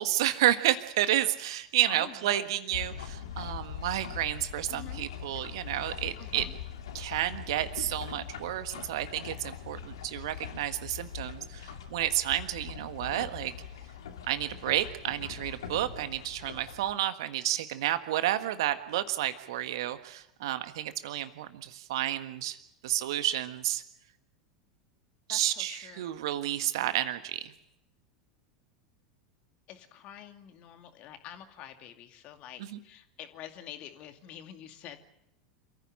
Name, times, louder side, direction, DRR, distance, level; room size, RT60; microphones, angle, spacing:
voice 1, 0.0-6.4 6.9-13.5 14.3-22.6 22.8-23.8 25.3-27.5 32.7-32.8, right 13 dB, 60° right, 11 dB, 1.5 m, -31 dB
voice 2, 1.9-2.5 4.7-5.1 6.2-6.5 25.3-26.2 29.7-35.0, left 11 dB, 45° left, 7 dB, 2.3 m, -47 dB
sound 1, 2.7-16.9, left 8 dB, 65° left, 2.4 m, -42 dB
27.5 x 15.0 x 8.9 m, 0.83 s
figure-of-eight pair, 85°, 3 cm